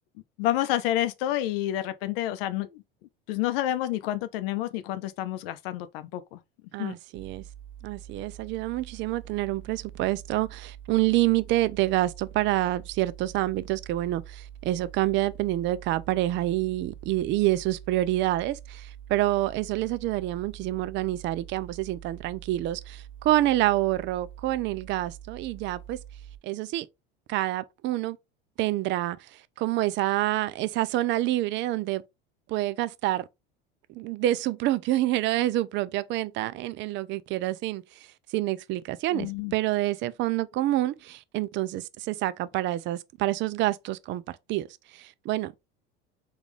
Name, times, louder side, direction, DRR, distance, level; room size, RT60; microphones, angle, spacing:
voice 1, 0.4-2.8 3.3-6.4 6.8-6.9 39.1-39.5, left 13 dB, 75° left, 0.6 m, -29 dB
voice 2, 6.7-7.4 7.8-26.0 26.4-26.9 27.3-28.2 28.6-32.0 32.5-33.2 33.9-38.1 38.3-44.2 44.5-44.7 44.9-45.6, right 15 dB, 40° right, 0.4 m, -27 dB
sound 1, 7.1-26.4, right 10 dB, 5° left, 1.0 m, -45 dB
3.6 x 2.4 x 3.1 m
hypercardioid pair, 85°, 29 cm